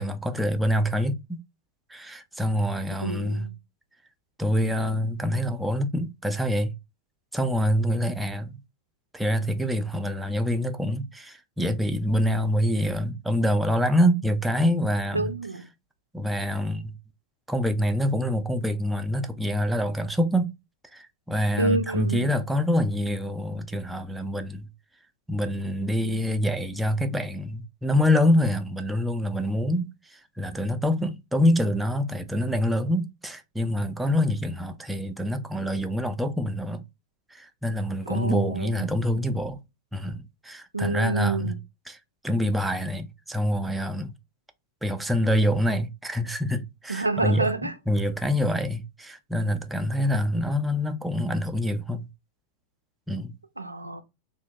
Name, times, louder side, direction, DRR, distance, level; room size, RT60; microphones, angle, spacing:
voice 1, 0.0-1.4 1.9-3.5 4.4-6.7 7.3-8.6 9.1-15.3 16.1-16.9 17.5-20.5 20.9-24.7 25.3-36.8 37.3-39.6 39.9-41.5 41.9-42.0 42.2-44.1 44.8-47.5 47.9-52.1 53.1-53.3, equal, 5° right, 0.3 m, -26 dB
voice 2, 3.0-3.6 15.1-15.7 21.6-22.3 38.1-39.0 40.7-41.6 46.9-47.8 53.6-54.0, right 3 dB, 85° right, 0.3 m, -28 dB
2.7 x 2.0 x 2.6 m
figure-of-eight pair, 90°, 0 cm